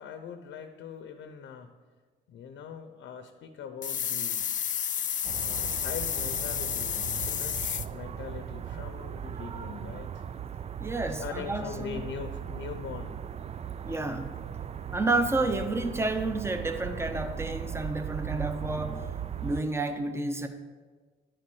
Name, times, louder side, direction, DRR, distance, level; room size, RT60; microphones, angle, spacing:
voice 1, 0.0-1.7 2.3-4.5 5.4-10.2 11.2-13.2, left 7 dB, 75° left, 6 dB, 0.8 m, -41 dB
sound 1, 3.8-7.9, left 9 dB, 40° left, 0.4 m, -31 dB
sound 2, 5.2-19.6, right 9 dB, 35° right, 0.4 m, -38 dB
voice 2, 10.8-12.0 13.8-14.3 14.9-19.1 19.4-20.5, right 2 dB, 15° right, 8 dB, 0.8 m, -30 dB
10.5 x 4.3 x 7.7 m, 1.4 s
cardioid pair, 90°, 20 cm